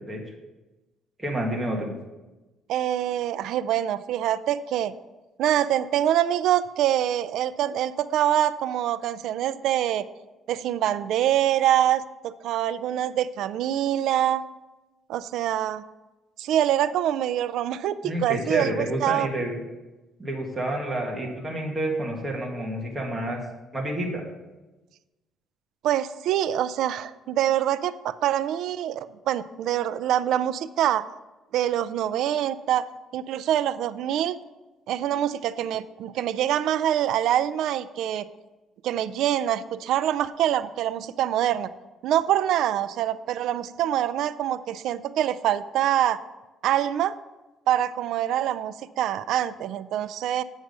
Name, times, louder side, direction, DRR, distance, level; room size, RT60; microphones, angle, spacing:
voice 1, 1.2-1.9 18.0-19.6 20.2-23.4 23.7-24.2, right 1 dB, 10° right, -1 dB, 1.9 m, -29 dB
voice 2, 2.7-4.9 5.4-10.1 10.5-14.4 15.1-15.8 16.4-19.3 25.8-31.1 31.5-32.9 33.1-34.4 34.9-38.3 38.8-41.7 42.0-46.2 46.6-47.1 47.7-50.4, right 11 dB, 75° right, 15 dB, 0.4 m, -25 dB
8.2 x 6.3 x 5.4 m, 1.1 s
cardioid pair, 140°, 0 cm